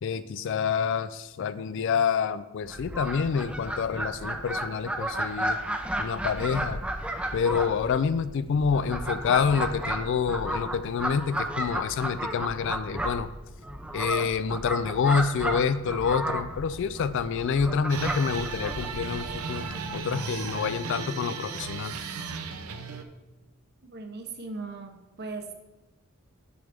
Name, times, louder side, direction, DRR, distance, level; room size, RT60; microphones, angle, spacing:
voice 1, 0.0-5.6 6.0-6.8 7.3-13.3 13.9-21.9, left 6 dB, 60° left, 14 dB, 0.3 m, -27 dB
Fowl, 2.6-20.0, right 1 dB, 5° right, 0.5 m, -33 dB
sound 1, 17.9-23.0, right 5 dB, 85° right, 0.6 m, -35 dB
voice 2, 23.8-25.5, right 3 dB, 50° right, 5 dB, 0.8 m, -38 dB
6.9 x 6.5 x 3.5 m, 1.0 s
head